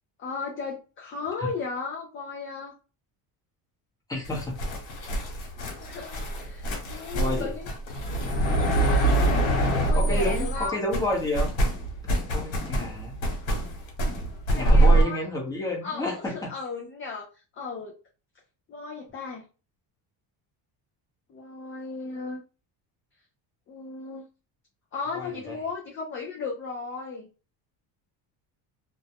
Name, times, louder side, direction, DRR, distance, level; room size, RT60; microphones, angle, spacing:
voice 1, 0.2-2.7 5.8-7.8 8.0-8.2 9.1-10.8 14.5-15.2 15.8-17.3 17.5-17.9 18.7-19.4 21.3-22.4 23.7-24.2 24.9-27.3, left 4 dB, 30° left, -1 dB, 0.3 m, -35 dB
voice 2, 4.1-4.6 7.1-7.5 9.9-11.5 12.3-13.2 14.5-16.5 25.1-25.5, left 1 dB, 10° left, -3 dB, 0.8 m, -30 dB
sound 1, 4.2-10.7 10.9-15.0, right 1 dB, 80° left, 1.1 m, -24 dB
2.3 x 2.1 x 2.8 m, 0.33 s
cardioid pair, 145°, 46 cm